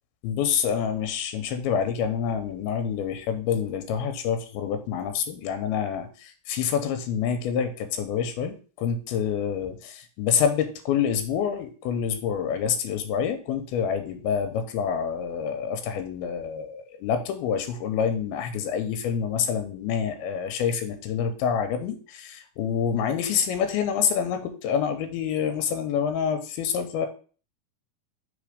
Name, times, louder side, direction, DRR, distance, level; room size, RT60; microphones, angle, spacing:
voice 1, 0.2-27.1, left 7 dB, 85° left, 8 dB, 2.7 m, -27 dB
5.3 x 4.2 x 5.0 m, 0.39 s
omnidirectional pair, 4.3 m